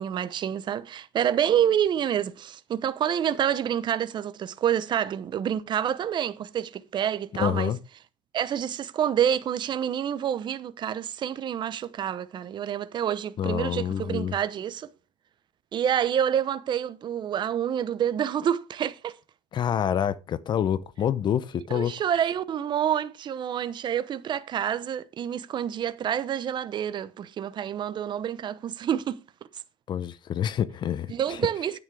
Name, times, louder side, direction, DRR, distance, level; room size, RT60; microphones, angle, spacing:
voice 1, 0.0-7.7 8.3-14.9 15.7-19.1 21.7-29.2 31.1-31.8, right 9 dB, 45° right, 0.9 m, -28 dB
voice 2, 7.4-7.8 13.4-14.3 19.5-21.9 29.9-31.4, left 9 dB, 45° left, 0.6 m, -27 dB
9.4 x 9.1 x 3.5 m
supercardioid pair, 95°, 11 cm